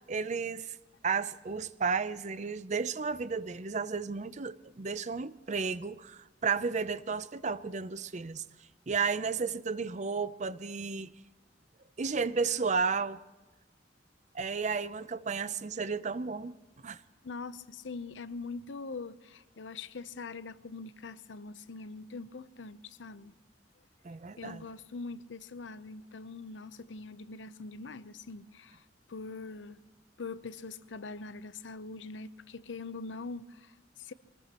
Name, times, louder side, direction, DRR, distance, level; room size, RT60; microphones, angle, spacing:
voice 1, 0.1-0.8 1.0-8.4 8.9-11.1 12.0-13.2 14.3-16.6 16.8-17.0 24.0-24.6, right 5 dB, 40° right, 0.5 m, -33 dB
voice 2, 17.2-23.4 24.4-29.8 30.2-34.1, left 4 dB, 85° left, 0.7 m, -43 dB
23.0 x 19.5 x 3.0 m
head